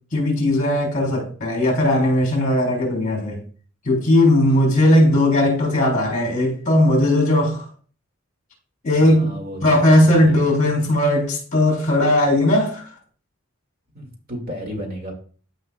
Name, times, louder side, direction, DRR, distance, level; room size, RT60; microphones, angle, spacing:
voice 1, 0.1-3.4 3.8-7.7 8.8-12.9, left 1 dB, 35° left, 3.4 m, -18 dB
voice 2, 8.9-10.4 13.9-15.1, equal, 40° right, 2.1 m, -33 dB
14.5 x 5.5 x 2.3 m
head